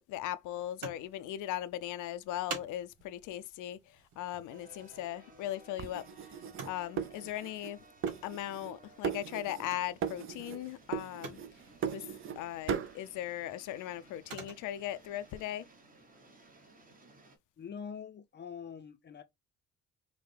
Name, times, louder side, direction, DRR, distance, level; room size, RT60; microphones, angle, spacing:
voice 1, 0.1-3.8 4.2-6.1 6.6-7.8 8.2-11.4 11.9-12.0 12.4-15.7, left 13 dB, 90° left, 0.5 m, -38 dB
sound 1, 0.6-15.4, right 5 dB, 75° right, 1.3 m, -51 dB
sound 2, 4.5-17.4, right 1 dB, 30° right, 1.1 m, -59 dB
sound 3, 5.8-7.7 8.0-8.8 9.0-9.7 10.0-10.6 10.9-12.4 12.7-13.0, right 8 dB, 45° right, 0.5 m, -37 dB
voice 2, 17.6-19.2, left 7 dB, 35° left, 0.5 m, -44 dB
4.9 x 2.1 x 3.3 m
cardioid pair, 90°, 30 cm